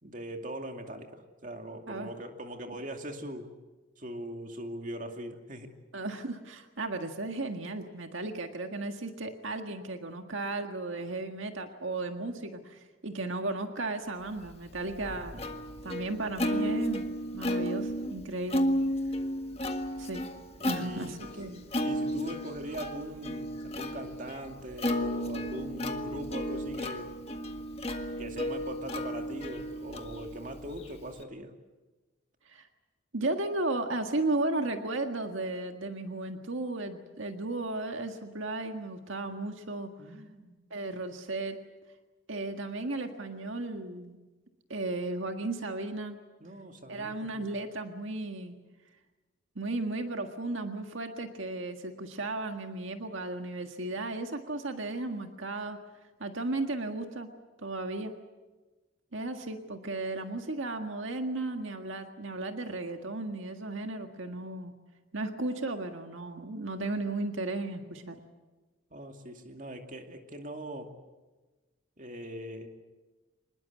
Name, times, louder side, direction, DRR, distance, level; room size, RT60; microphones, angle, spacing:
voice 1, 0.0-3.5 4.0-5.7 15.0-15.3 15.5-15.7 20.6-21.2 21.8-27.1 28.2-31.5 40.0-40.6 46.4-47.5 68.9-70.9 72.0-72.7, right 1 dB, 40° right, 4 dB, 2.5 m, -41 dB
voice 2, 5.9-15.5 15.8-17.0 17.3-18.7 20.0-20.2 20.6-21.7 32.5-32.7 33.1-39.9 40.7-41.6 42.3-44.2 44.7-46.2 46.9-48.6 49.6-55.8 56.2-57.3 57.6-58.1 59.1-64.7 65.1-68.2, right 2 dB, 75° right, 5 dB, 1.7 m, -35 dB
Plucked string instrument, 14.5-31.2, equal, 30° left, 1.6 m, -34 dB
25.5 x 21.0 x 8.3 m, 1.2 s
head